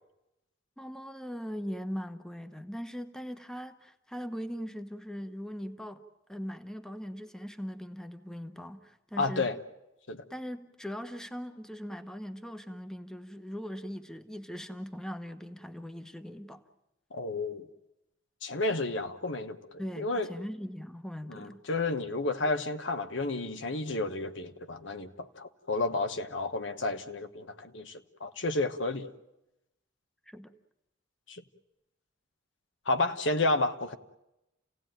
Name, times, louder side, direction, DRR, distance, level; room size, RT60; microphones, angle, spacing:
voice 1, 0.8-6.0 6.3-9.5 10.3-16.6 19.8-21.6 30.3-30.5, equal, 5° left, 8 dB, 1.0 m, -40 dB
voice 2, 9.2-9.6 10.1-10.2 17.1-17.7 18.4-20.3 21.3-29.1 31.3-31.4 32.9-34.0, left 2 dB, 75° left, 8 dB, 1.2 m, -31 dB
29.0 x 17.0 x 9.1 m, 0.93 s
head